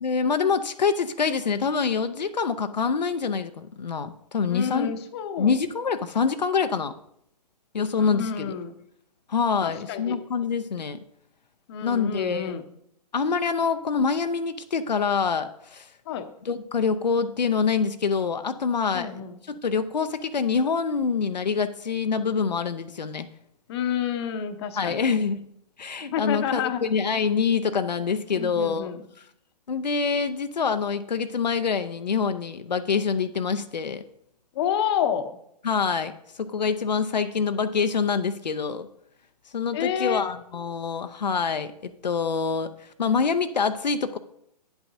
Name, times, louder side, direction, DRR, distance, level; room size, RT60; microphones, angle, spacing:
voice 1, 0.0-4.9 5.4-6.9 7.7-8.6 9.3-11.0 11.8-12.5 13.1-15.9 16.5-23.3 24.8-25.4 25.8-28.9 29.7-34.0 35.6-36.1 36.4-38.9 39.5-44.2, left 5 dB, 85° left, 9 dB, 0.6 m, -25 dB
voice 2, 4.5-5.5 8.0-8.7 9.6-10.2 11.7-12.6 16.1-16.3 18.9-19.4 23.7-25.0 26.1-26.8 28.4-29.0 34.5-35.4 39.7-40.2, left 8 dB, 40° left, 9 dB, 0.8 m, -29 dB
9.9 x 8.1 x 2.7 m, 0.71 s
figure-of-eight pair, 125°, 21 cm